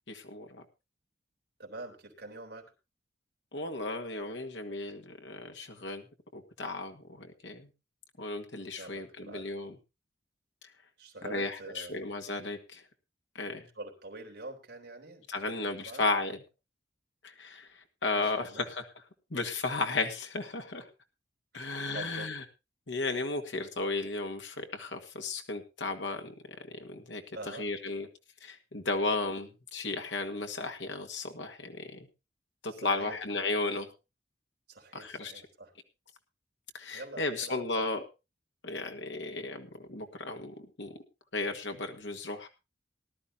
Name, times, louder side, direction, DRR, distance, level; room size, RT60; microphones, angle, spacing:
voice 1, 0.1-0.6 3.5-6.0 6.3-7.7 8.2-9.7 11.2-12.8 13.4-13.6 15.3-16.4 17.2-18.9 19.3-20.9 21.5-22.4 22.9-26.3 26.8-28.1 28.4-32.0 32.6-33.9 34.9-35.3 36.7-38.0 38.6-41.0 41.3-42.5, left 3 dB, 85° left, 5 dB, 1.8 m, -34 dB
voice 2, 1.6-2.7 8.8-9.5 11.0-12.0 13.7-16.0 18.2-18.6 19.4-19.5 21.5-22.3 27.3-27.7 32.7-33.2 34.7-35.7 36.9-37.6, right 2 dB, 60° right, 1 dB, 3.7 m, -45 dB
19.5 x 12.0 x 2.8 m, 0.27 s
head